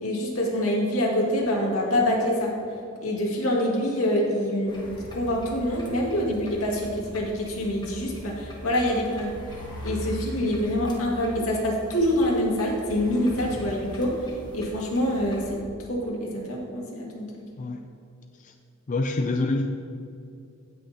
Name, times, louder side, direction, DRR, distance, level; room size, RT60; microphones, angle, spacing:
voice 1, 0.0-2.5 3.0-9.3 9.8-14.1 14.5-15.6 15.9-17.3, left 1 dB, 80° left, -2 dB, 2.1 m, -25 dB
sound 1, 4.7-15.6, equal, 20° left, 1.2 m, -40 dB
voice 2, 18.9-19.7, left 2 dB, 35° left, 5 dB, 0.4 m, -26 dB
16.5 x 6.3 x 2.8 m, 2.6 s
head